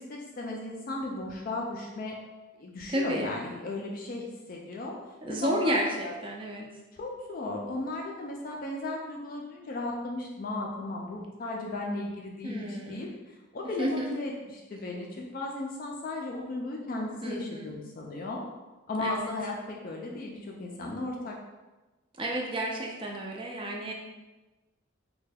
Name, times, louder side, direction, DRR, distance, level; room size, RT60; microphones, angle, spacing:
voice 1, 0.0-2.2 2.5-5.0 5.3-6.1 7.0-18.4 18.9-21.3, left 2 dB, 40° left, -1 dB, 0.3 m, -36 dB
voice 2, 2.9-3.3 5.2-6.7 12.4-13.1 13.8-14.1 17.2-17.8 19.0-19.3 22.2-23.9, right 1 dB, 25° right, 0 dB, 0.4 m, -31 dB
3.2 x 2.2 x 3.3 m, 1.1 s
head